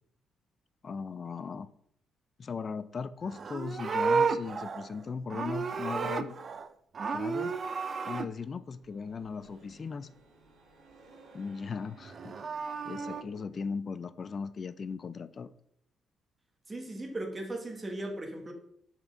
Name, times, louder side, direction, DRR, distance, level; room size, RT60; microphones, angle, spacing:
voice 1, 0.8-1.7 2.4-6.4 7.1-7.5 8.0-10.1 11.3-12.4 12.8-15.5, left 5 dB, 40° left, 0.4 m, -38 dB
Livestock farm animals working animals, 3.2-6.7 6.9-8.3 12.0-13.2, right 5 dB, 45° right, 0.4 m, -32 dB
sound 1, 8.5-13.8, right 3 dB, 75° right, 1.3 m, -56 dB
voice 2, 16.7-18.5, right 1 dB, 25° right, 1.3 m, -37 dB
5.6 x 4.4 x 3.8 m
cardioid pair, 90°, 0 cm